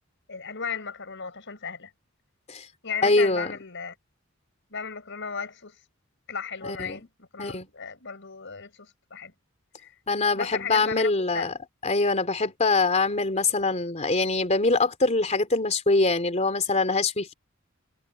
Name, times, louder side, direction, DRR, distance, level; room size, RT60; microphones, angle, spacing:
voice 1, 0.3-1.9 2.8-4.0 4.7-5.8 6.3-9.3 9.8-9.9 10.3-11.5, left 6 dB, 65° left, 5.5 m, -35 dB
voice 2, 3.0-3.5 6.7-7.1 7.4-7.7 10.1-11.5 11.8-17.3, left 3 dB, 35° left, 3.2 m, -24 dB
head